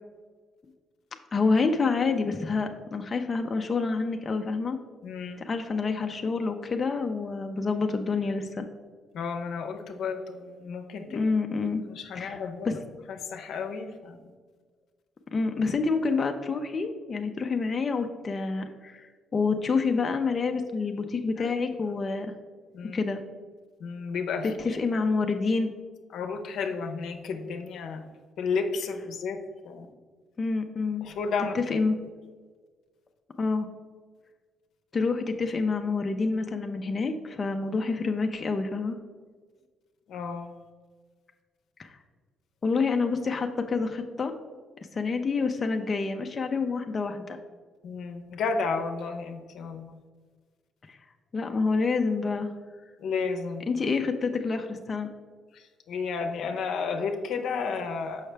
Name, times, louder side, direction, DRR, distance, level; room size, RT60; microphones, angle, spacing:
voice 1, 1.3-4.8 5.4-8.7 11.1-11.8 12.1-12.4 12.6-12.8 15.3-22.3 22.9-23.2 24.6-25.7 30.4-31.1 31.5-32.0 33.4-33.7 34.9-39.0 41.8-41.9 42.6-44.3 44.9-47.4 50.9-51.0 51.3-52.5 53.7-55.1, left 4 dB, 35° left, 4 dB, 0.5 m, -27 dB
voice 2, 5.0-5.4 9.1-11.3 11.9-12.7 13.1-14.2 21.4-21.5 22.7-23.0 23.8-24.6 26.1-28.1 28.4-29.4 29.6-29.9 31.0-31.6 40.1-40.5 47.8-50.0 53.0-53.7 55.5-58.3, left 5 dB, 75° left, 5 dB, 0.7 m, -32 dB
6.3 x 5.6 x 3.3 m, 1.5 s
cardioid pair, 90°, 0 cm